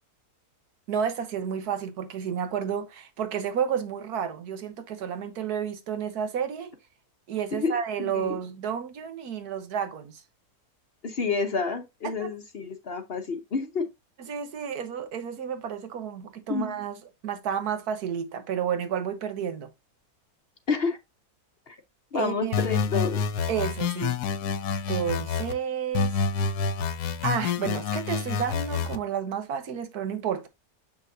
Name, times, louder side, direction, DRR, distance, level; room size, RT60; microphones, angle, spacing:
voice 1, 0.9-6.7 7.3-10.2 12.0-12.3 14.2-17.0 17.2-19.7 22.1-22.6 23.5-24.2 24.9-26.1 27.2-30.5, right 8 dB, 80° right, 1.5 m, -31 dB
voice 2, 7.5-8.4 11.0-13.9 16.5-16.8 20.7-21.0 21.7-21.8 22.1-23.2, left 5 dB, 45° left, 0.9 m, -29 dB
sound 1, 22.5-25.5 25.9-29.0, left 5 dB, 85° left, 1.2 m, -28 dB
7.1 x 5.6 x 2.6 m
omnidirectional pair, 1.6 m